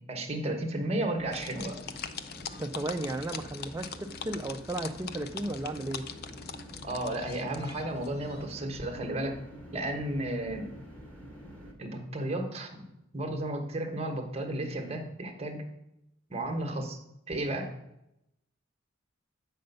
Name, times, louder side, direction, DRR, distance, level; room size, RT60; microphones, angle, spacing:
voice 1, 0.1-1.8 6.8-9.4 9.7-10.7 11.8-12.7 13.1-15.6 16.3-17.0 17.3-17.7, right 1 dB, 30° right, 4 dB, 1.1 m, -33 dB
sound 1, 1.2-11.7, equal, 5° left, 1.4 m, -47 dB
sound 2, 1.3-8.5, left 7 dB, 50° left, 0.5 m, -42 dB
voice 2, 2.6-6.1, right 1 dB, 15° right, 3 dB, 0.3 m, -34 dB
7.8 x 5.3 x 5.3 m, 0.84 s
head